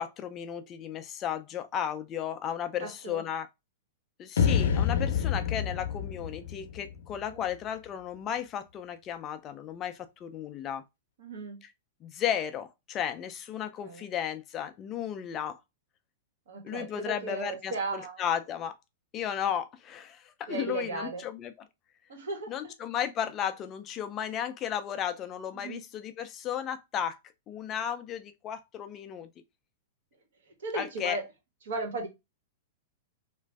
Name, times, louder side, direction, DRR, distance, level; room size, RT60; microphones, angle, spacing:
voice 1, 0.0-3.5 4.2-10.8 11.6-11.7 12.0-15.6 16.6-18.8 19.1-21.7 22.5-27.2 27.5-29.3 30.7-31.2, left 9 dB, 20° left, 0.3 m, -34 dB
voice 2, 2.8-3.2 7.3-7.4 11.2-11.6 13.8-14.1 16.5-18.3 20.5-21.2 22.1-22.7 25.5-25.8 30.6-31.2 31.6-32.1, right 3 dB, 75° right, 1.4 m, -36 dB
sound 1, 4.4-7.6, left 7 dB, 70° left, 0.5 m, -28 dB
3.0 x 2.5 x 3.3 m
supercardioid pair, 175°, 0 cm